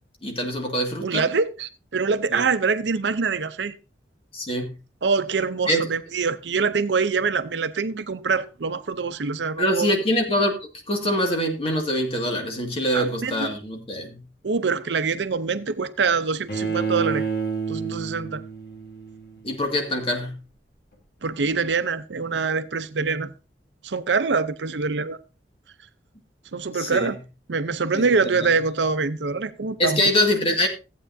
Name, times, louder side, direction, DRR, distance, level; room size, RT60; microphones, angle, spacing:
voice 1, 0.2-1.2 2.3-2.4 4.3-4.8 5.7-5.8 9.6-10.5 10.9-14.2 19.4-20.4 26.7-27.1 27.9-28.0 28.4-28.5 29.8-30.7, equal, 35° left, 2.1 m, -24 dB
voice 2, 1.0-3.7 5.0-9.9 12.9-13.5 14.4-17.3 17.7-18.4 21.2-23.3 23.8-25.2 26.5-27.2 27.5-30.0, right 4 dB, 85° right, 0.7 m, -24 dB
Bowed string instrument, 16.5-19.5, right 5 dB, 60° left, 1.9 m, -29 dB
14.5 x 8.5 x 2.7 m
head